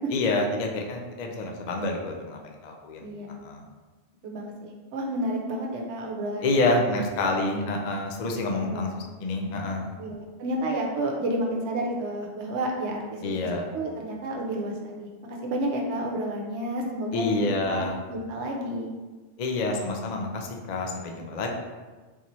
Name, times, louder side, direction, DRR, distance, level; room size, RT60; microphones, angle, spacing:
voice 1, 0.1-3.1 3.4-3.6 6.4-8.9 9.2-9.9 13.2-13.7 17.1-18.0 19.4-21.5, left 2 dB, 65° left, 1 dB, 0.4 m, -28 dB
voice 2, 3.0-3.4 4.2-7.4 8.5-8.9 10.0-13.2 13.7-19.0, right 1 dB, 70° right, 0 dB, 0.9 m, -31 dB
3.9 x 2.8 x 3.0 m, 1.3 s
omnidirectional pair, 1.2 m